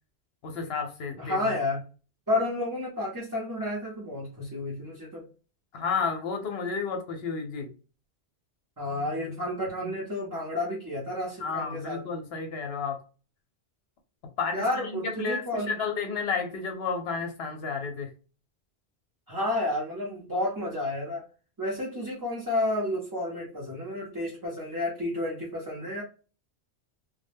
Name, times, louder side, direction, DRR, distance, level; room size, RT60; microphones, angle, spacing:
voice 1, 0.4-1.6 5.7-7.7 9.8-9.9 11.4-13.0 14.4-18.1, left 5 dB, 70° left, 0.8 m, -31 dB
voice 2, 1.2-1.8 2.3-5.3 8.8-12.0 14.5-15.7 19.3-21.3 21.6-26.0, left 1 dB, 25° right, 0.6 m, -31 dB
2.2 x 2.0 x 3.2 m
omnidirectional pair, 1.2 m